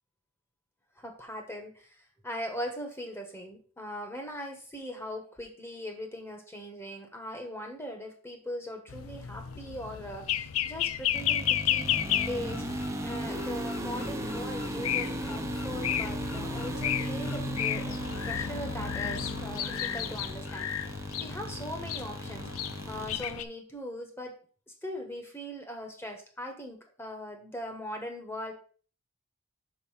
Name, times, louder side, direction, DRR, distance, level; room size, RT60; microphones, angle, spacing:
voice 1, 1.0-1.9 2.2-11.9 12.3-18.0 18.2-20.7 21.2-22.5 22.9-24.3 24.8-28.5, equal, 10° left, 3 dB, 1.4 m, -40 dB
sound 1, 8.9-23.4, left 10 dB, 75° left, 0.5 m, -33 dB
sound 2, 11.1-23.3, right 1 dB, 15° right, 0.8 m, -37 dB
5.5 x 5.5 x 5.7 m, 0.41 s
head